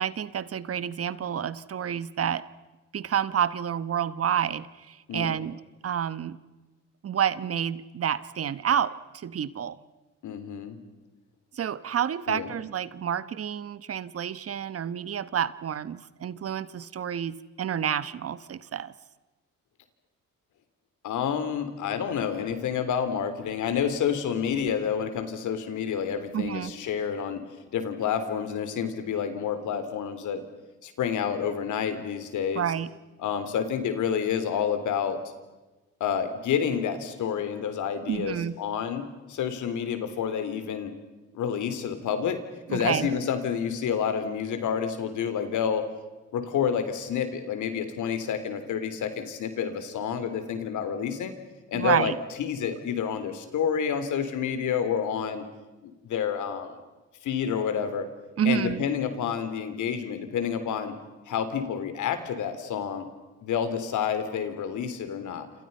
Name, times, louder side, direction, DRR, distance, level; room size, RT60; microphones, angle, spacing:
voice 1, 0.0-2.5 2.9-6.4 7.0-9.8 11.5-18.9 26.3-26.7 32.5-32.9 38.1-38.5 42.7-43.1 51.7-52.2 58.4-58.8, right 9 dB, 50° right, 16 dB, 1.2 m, -29 dB
voice 2, 10.2-10.8 12.3-12.5 21.0-27.4 27.7-30.4 30.8-32.6 33.2-35.2 36.0-40.9 41.3-42.4 42.7-45.9 46.3-51.3 51.7-52.1 52.4-55.4 55.8-56.8 57.2-58.1 58.4-61.0 61.3-63.1 63.4-65.5, left 7 dB, 75° left, 9 dB, 3.6 m, -29 dB
28.0 x 27.5 x 5.6 m, 1.1 s
cardioid pair, 90°, 30 cm